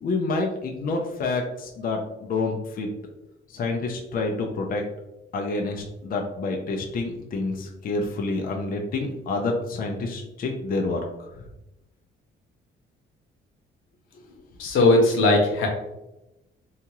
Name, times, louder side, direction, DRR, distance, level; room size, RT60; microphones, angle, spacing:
voice 1, 0.0-2.9 3.5-4.8 5.3-11.0, left 3 dB, 45° left, 1 dB, 0.5 m, -28 dB
voice 2, 14.6-15.7, left 2 dB, 85° left, 1 dB, 0.7 m, -18 dB
2.8 x 2.3 x 2.9 m, 0.94 s
cardioid pair, 90°, 20 cm